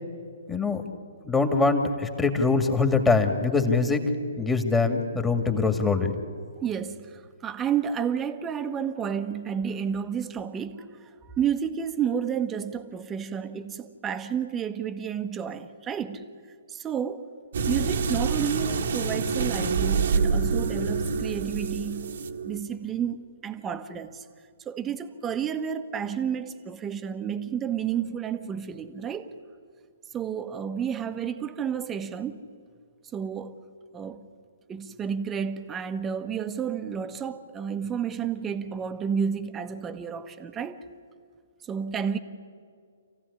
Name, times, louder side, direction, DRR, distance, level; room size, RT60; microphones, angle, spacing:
voice 1, 0.5-0.8 1.3-4.0 4.4-6.2, left 4 dB, 10° left, 5 dB, 2.2 m, -23 dB
voice 2, 6.6-11.1 11.4-16.3 16.7-17.3 17.7-22.2 22.4-24.2 24.6-29.3 30.1-32.4 33.1-33.6 33.9-34.3 34.7-40.8 41.6-42.2, right 7 dB, 15° right, 9 dB, 1.3 m, -31 dB
sound 1, 17.5-22.6, right 5 dB, 60° right, 1.6 m, -26 dB
28.0 x 15.5 x 9.9 m, 2.2 s
figure-of-eight pair, 130°, 0 cm